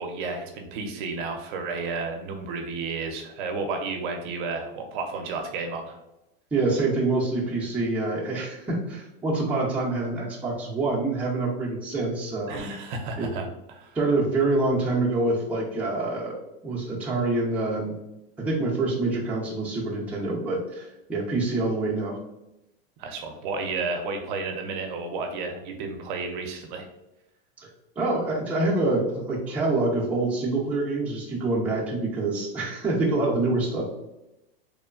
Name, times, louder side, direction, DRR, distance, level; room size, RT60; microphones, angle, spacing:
voice 1, 0.0-6.0 12.5-14.0 23.0-26.9, right 4 dB, 55° right, 4 dB, 0.5 m, -32 dB
voice 2, 6.5-12.7 13.2-13.3 13.9-16.4 16.6-18.0 18.4-22.2 28.0-33.9, right 2 dB, 5° right, -6 dB, 0.5 m, -26 dB
3.0 x 2.1 x 2.3 m, 0.91 s
supercardioid pair, 135°, 30 cm